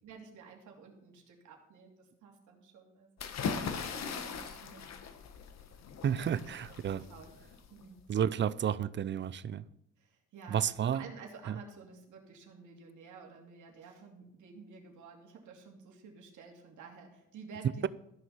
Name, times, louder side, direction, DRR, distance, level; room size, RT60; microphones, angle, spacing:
voice 1, 0.0-3.3 3.6-4.8 6.2-7.4 7.7-8.4 10.0-17.9, right 5 dB, 75° right, 2.8 m, -52 dB
sound 1, 3.2-8.0, left 6 dB, 60° left, 1.4 m, -40 dB
voice 2, 6.0-7.0 8.1-9.6 10.5-11.0 11.5-11.6, right 8 dB, 40° right, 0.5 m, -31 dB
14.5 x 6.4 x 5.6 m
cardioid pair, 90°, 30 cm